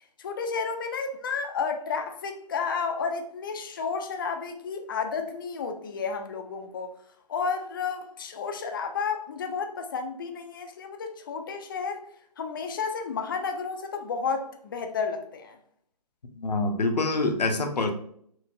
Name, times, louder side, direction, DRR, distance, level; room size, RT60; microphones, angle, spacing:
voice 1, 0.0-6.9 7.3-12.1 12.4-15.6, left 5 dB, 30° left, 0.4 m, -32 dB
voice 2, 16.4-17.9, left 3 dB, 75° left, 0.7 m, -25 dB
4.6 x 2.1 x 2.6 m
figure-of-eight pair, 140°, 21 cm